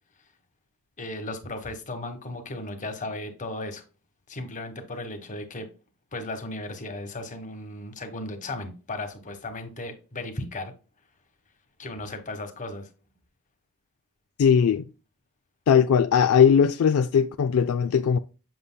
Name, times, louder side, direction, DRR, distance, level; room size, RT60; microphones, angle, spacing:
voice 1, 1.0-3.8 4.3-5.7 6.1-10.7 11.8-12.9, left 2 dB, 35° left, 1.3 m, -35 dB
voice 2, 14.4-14.8 15.7-18.2, left 7 dB, 70° left, 0.4 m, -19 dB
7.8 x 6.6 x 2.2 m
head